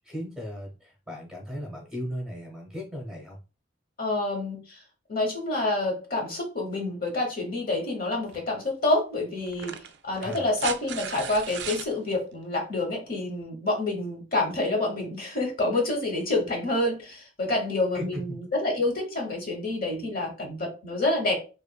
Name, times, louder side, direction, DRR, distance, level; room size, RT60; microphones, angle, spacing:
voice 1, 0.0-3.4 10.2-10.5 17.9-18.2, equal, 5° right, -1 dB, 0.8 m, -36 dB
voice 2, 4.0-4.8 5.1-9.7 10.0-21.4, left 2 dB, 50° left, 2 dB, 0.9 m, -28 dB
sound 1, 8.3-8.5 9.5-11.9 13.4-13.5, right 8 dB, 65° right, 0.3 m, -36 dB
2.9 x 2.4 x 2.2 m, 0.32 s
head